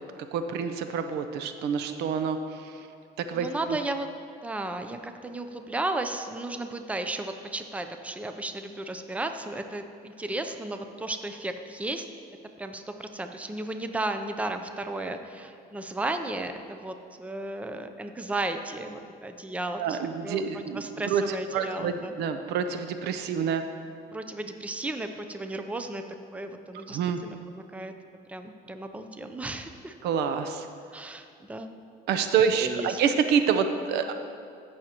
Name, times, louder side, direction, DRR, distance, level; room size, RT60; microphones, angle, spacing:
voice 1, 0.3-2.7 3.2-3.8 19.8-21.2 21.5-23.6 26.9-27.2 30.0-30.7 32.1-34.1, right 7 dB, 80° right, 8 dB, 0.6 m, -27 dB
voice 2, 3.3-4.1 4.4-12.1 12.6-20.4 20.7-22.1 24.1-26.0 26.3-27.9 28.3-29.9 30.9-31.7 32.5-33.0, right 2 dB, 10° right, 7 dB, 0.5 m, -34 dB
15.5 x 6.3 x 2.9 m, 2.4 s
cardioid pair, 110°, 17 cm